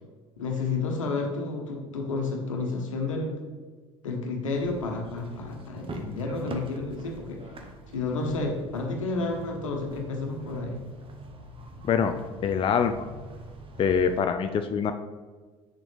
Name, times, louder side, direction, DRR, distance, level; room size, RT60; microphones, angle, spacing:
voice 1, 0.4-3.4 4.0-7.5 7.9-10.8, left 3 dB, 80° left, 2 dB, 1.3 m, -31 dB
sound 1, 4.6-14.2, right 2 dB, 35° right, 1.0 m, -44 dB
voice 2, 11.8-12.2 12.4-13.1 13.8-14.9, left 6 dB, 35° left, 8 dB, 0.5 m, -24 dB
8.1 x 6.8 x 3.4 m, 1.4 s
figure-of-eight pair, 65°, 16 cm